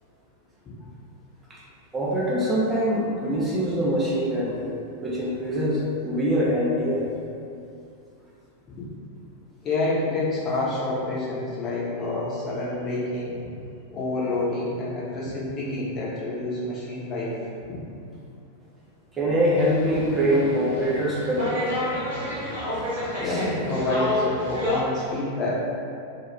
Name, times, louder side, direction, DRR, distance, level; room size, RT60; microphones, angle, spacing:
voice 1, 1.9-4.6 5.0-7.1 19.1-21.6 23.2-23.4, equal, 15° right, -6 dB, 0.4 m, -24 dB
voice 2, 9.6-13.4 13.9-17.3 17.7-17.8 23.2-25.5, left 2 dB, 30° left, -8 dB, 0.7 m, -28 dB
sound 1, 19.5-24.8, left 1 dB, 60° right, 0.9 m, -30 dB
2.2 x 2.2 x 2.9 m, 2.5 s
figure-of-eight pair, 90°, 0 cm